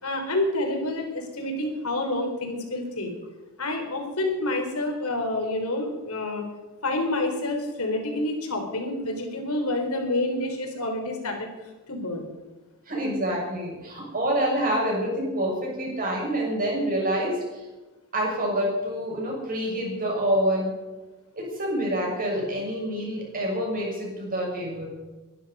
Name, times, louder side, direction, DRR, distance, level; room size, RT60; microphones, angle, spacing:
voice 1, 0.0-3.1 3.6-6.4 6.8-11.5 11.9-12.3, left 2 dB, 75° left, 3 dB, 4.0 m, -28 dB
voice 2, 12.9-17.6 18.1-20.7 21.4-24.9, equal, 40° right, -2 dB, 7.1 m, -27 dB
23.0 x 11.5 x 5.5 m, 1.2 s
head